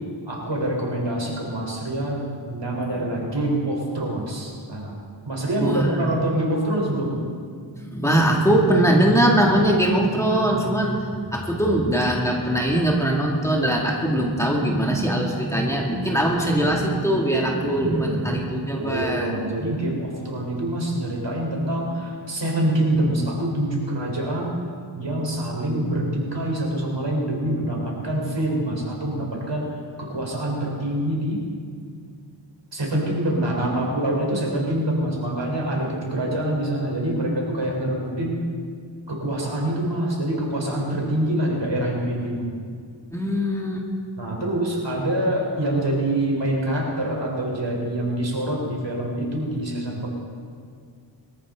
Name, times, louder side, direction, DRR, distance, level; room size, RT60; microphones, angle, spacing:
voice 1, 0.3-5.0 5.2-7.1 17.4-18.3 18.8-24.5 25.0-27.8 28.0-29.7 30.0-31.4 32.7-38.4 39.1-42.5 44.2-50.1, right 1 dB, 70° right, -2 dB, 4.3 m, -25 dB
voice 2, 7.7-19.3 23.0-23.1 43.1-43.8, right 1 dB, 5° left, -2 dB, 2.5 m, -21 dB
22.5 x 14.0 x 3.9 m, 2.1 s
wide cardioid pair, 55°, 45 cm